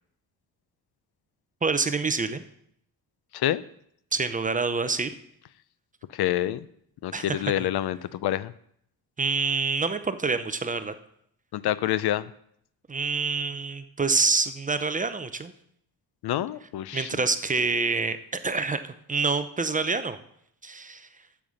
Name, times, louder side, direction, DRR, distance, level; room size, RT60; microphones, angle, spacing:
voice 1, 1.6-2.4 4.1-5.1 7.1-7.4 9.2-10.9 12.9-15.5 16.9-20.2 20.6-21.1, right 4 dB, 20° right, 11 dB, 0.6 m, -27 dB
voice 2, 6.1-6.7 7.0-8.5 11.5-12.3 16.2-17.1, left 13 dB, 75° left, 17 dB, 0.6 m, -27 dB
8.8 x 7.2 x 6.3 m, 0.70 s
cardioid pair, 125°, 39 cm